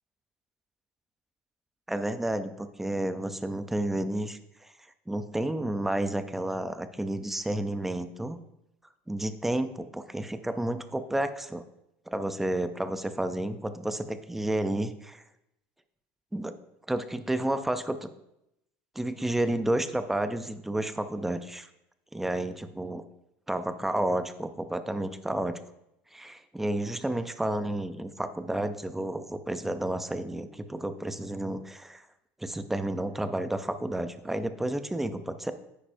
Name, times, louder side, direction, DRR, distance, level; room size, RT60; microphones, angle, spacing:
voice 1, 1.9-4.7 5.1-8.4 9.1-11.6 12.1-15.2 16.3-16.5 16.9-18.1 19.0-21.7 22.1-23.0 23.5-25.6 26.1-32.0 32.4-35.5, right 1 dB, 5° right, 10 dB, 0.4 m, -31 dB
10.0 x 8.5 x 2.6 m, 0.85 s
cardioid pair, 165°, 6 cm